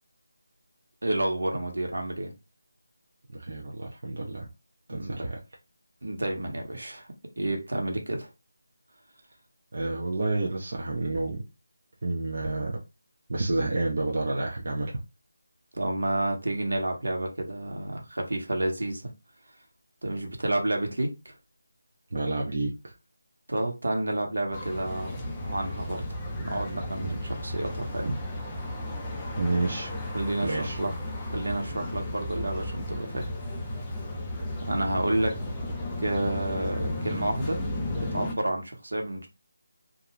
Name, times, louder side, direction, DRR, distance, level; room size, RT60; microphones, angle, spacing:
voice 1, 1.0-2.3 4.9-5.2 6.0-7.1 7.4-8.3 15.7-19.1 20.0-21.3 23.5-28.2 30.1-30.9 31.3-33.3 34.7-35.4 36.0-37.6 37.9-39.3, right 1 dB, 80° right, 1.0 m, -30 dB
voice 2, 3.3-4.5 4.9-5.4 9.7-11.4 12.0-12.8 13.3-14.9 22.1-22.9 29.4-29.9 30.4-30.8, right 2 dB, 45° right, 0.6 m, -29 dB
sound 1, 24.5-38.3, left 1 dB, 10° left, 0.4 m, -34 dB
2.4 x 2.2 x 3.0 m
figure-of-eight pair, 175°, 0 cm